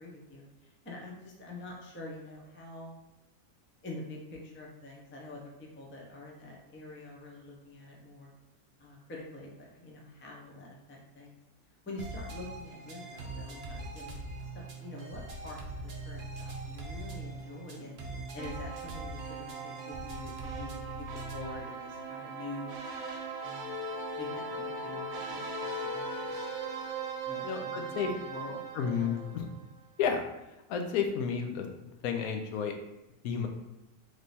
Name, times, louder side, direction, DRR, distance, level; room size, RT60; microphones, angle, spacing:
voice 1, 0.0-2.9 3.8-8.3 8.8-11.4 11.9-14.2 14.5-22.7 23.4-23.8 24.2-25.4 25.8-26.4 27.3-29.5, left 2 dB, 15° left, -2 dB, 0.4 m, -46 dB
sound 1, 12.0-21.6, right 2 dB, 50° right, 0.8 m, -42 dB
sound 2, 18.4-29.6, right 3 dB, 70° right, 1.1 m, -39 dB
voice 2, 27.4-28.1 28.8-29.5 30.0-30.2 30.7-31.7 32.0-32.7 33.2-33.5, left 7 dB, 75° left, 4 dB, 1.0 m, -31 dB
3.3 x 3.1 x 4.0 m, 0.97 s
omnidirectional pair, 1.6 m